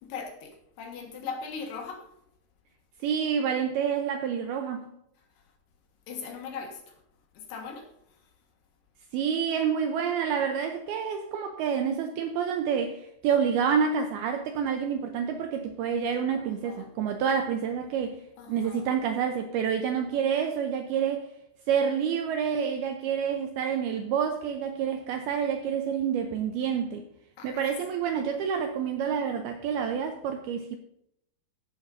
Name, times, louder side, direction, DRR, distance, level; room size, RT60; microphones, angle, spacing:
voice 1, 0.0-2.1 6.1-6.9 7.3-7.9 16.4-16.9 18.4-18.8 27.4-27.6, left 5 dB, 70° left, 3.4 m, -39 dB
voice 2, 3.0-4.9 9.1-18.2 18.5-21.3 21.7-27.0 27.4-30.8, right 7 dB, 80° right, 2.3 m, -28 dB
14.5 x 11.0 x 2.6 m
omnidirectional pair, 5.2 m